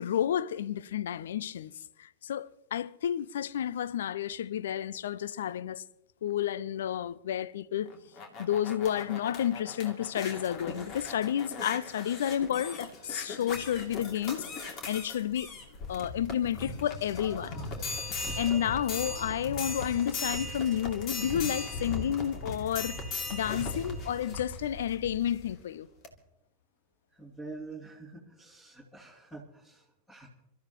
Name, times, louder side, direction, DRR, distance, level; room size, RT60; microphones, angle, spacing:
voice 1, 0.0-1.7 2.0-5.8 6.2-7.9 8.4-15.5 15.9-17.6 18.4-23.0 23.3-25.9, left 10 dB, 60° left, 0.5 m, -31 dB
sound 1, 7.8-25.5 26.0-26.1, left 3 dB, 35° left, 2.7 m, -38 dB
voice 2, 27.2-30.3, right 3 dB, 10° left, 2.9 m, -46 dB
29.0 x 14.0 x 3.1 m
figure-of-eight pair, 90°, 0 cm